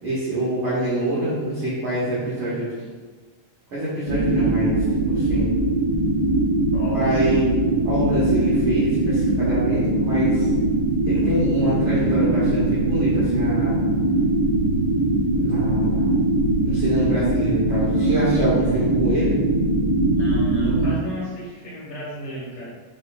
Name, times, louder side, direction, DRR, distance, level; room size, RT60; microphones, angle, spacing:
voice 1, 0.0-2.7 3.7-5.5 6.9-10.5 11.0-13.9 15.2-16.2 16.6-19.4, right 1 dB, 60° right, -9 dB, 1.5 m, -26 dB
sound 1, 4.0-20.9, right 2 dB, 85° right, 0.7 m, -21 dB
voice 2, 6.7-7.3 20.1-22.6, equal, 85° left, -9 dB, 2.9 m, -33 dB
6.7 x 3.1 x 2.4 m, 1.4 s
omnidirectional pair, 3.5 m